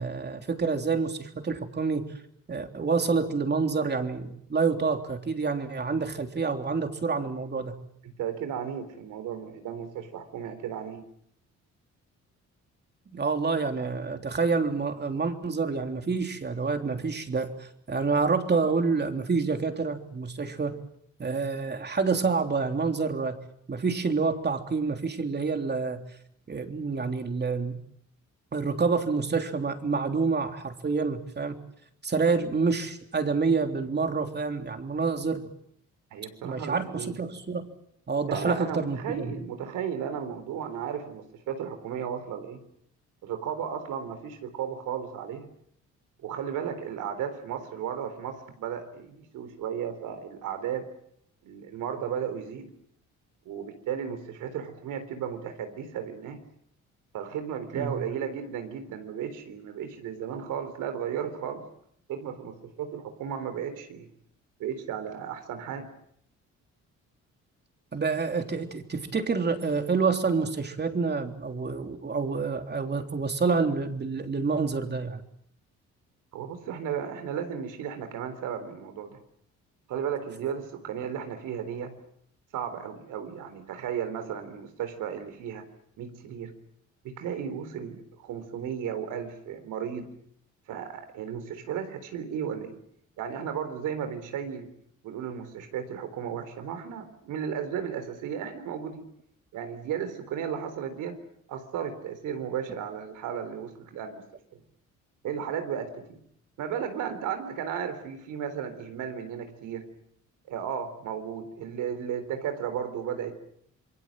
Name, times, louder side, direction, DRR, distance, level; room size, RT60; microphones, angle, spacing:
voice 1, 0.0-2.1 2.5-7.7 13.1-20.8 21.2-23.4 23.7-26.0 26.5-27.8 28.5-31.6 32.0-35.5 36.4-37.7 38.1-39.3 57.7-58.0 67.9-75.2, right 4 dB, 35° right, 6 dB, 3.3 m, -28 dB
voice 2, 8.0-11.0 36.1-37.1 38.2-42.6 43.2-45.5 46.2-50.9 51.4-52.7 53.5-56.4 57.1-61.6 62.1-64.1 64.6-65.9 76.3-79.2 79.9-81.9 82.5-85.6 86.0-86.5 87.0-90.1 90.7-92.8 93.2-94.7 95.0-99.0 99.5-101.2 101.5-104.2 104.5-104.6 105.2-106.2 106.6-109.9 110.5-113.4, right 8 dB, 90° right, 9 dB, 3.8 m, -34 dB
27.5 x 22.5 x 7.6 m, 0.70 s
cardioid pair, 90°, 30 cm